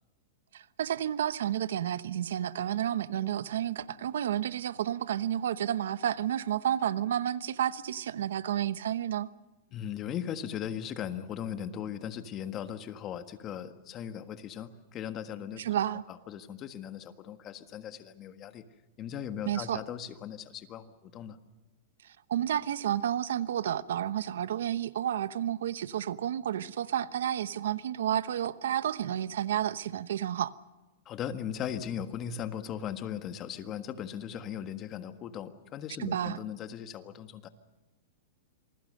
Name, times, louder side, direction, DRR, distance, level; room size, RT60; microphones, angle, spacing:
voice 1, 0.5-9.3 15.6-16.0 19.5-19.8 22.0-30.5 36.0-36.4, right 10 dB, 80° right, 1.0 m, -31 dB
voice 2, 9.7-15.7 16.1-18.6 19.0-21.4 31.0-37.5, left 9 dB, 30° left, 1.5 m, -38 dB
27.5 x 20.5 x 6.6 m
supercardioid pair, 150°, 0 cm